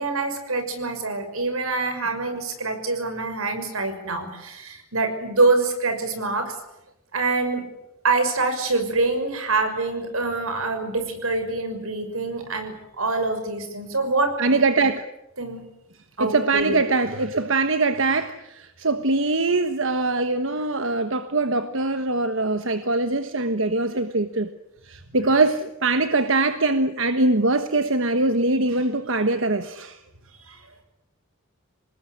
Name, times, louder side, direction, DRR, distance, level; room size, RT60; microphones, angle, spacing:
voice 1, 0.0-6.5 7.1-7.7 8.0-14.3 15.4-15.6 16.2-16.9 30.5-30.6, right 3 dB, 85° right, 7 dB, 6.2 m, -25 dB
voice 2, 14.4-15.0 16.2-24.5 24.8-30.0, right 3 dB, 65° right, 9 dB, 1.3 m, -22 dB
27.0 x 19.5 x 9.9 m, 0.86 s
head